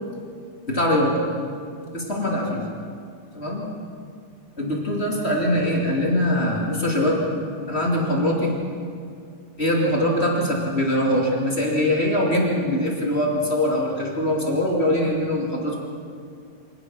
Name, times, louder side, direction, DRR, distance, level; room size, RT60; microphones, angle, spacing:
voice 1, 0.7-1.2 1.9-2.6 3.3-3.7 4.6-7.2 7.7-8.5 9.6-15.8, left 1 dB, 20° left, -2 dB, 1.7 m, -22 dB
25.0 x 18.5 x 6.2 m, 2.3 s
omnidirectional pair, 5.3 m